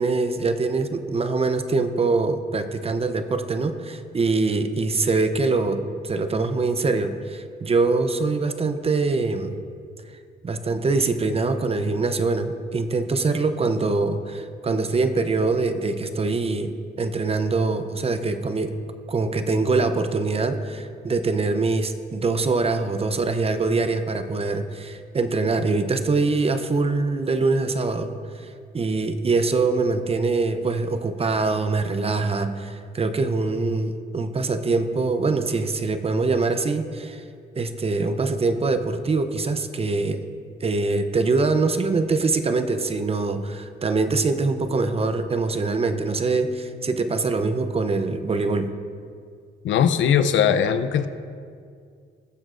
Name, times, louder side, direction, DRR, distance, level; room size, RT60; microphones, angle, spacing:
voice 1, 0.0-9.5 10.4-18.8 19.1-28.5 28.7-37.2 37.6-40.2 40.6-48.7, right 3 dB, 30° right, 9 dB, 0.7 m, -23 dB
voice 2, 49.6-51.1, left 8 dB, 70° left, 11 dB, 0.6 m, -19 dB
19.5 x 7.0 x 2.6 m, 2.2 s
cardioid pair, 90°, 20 cm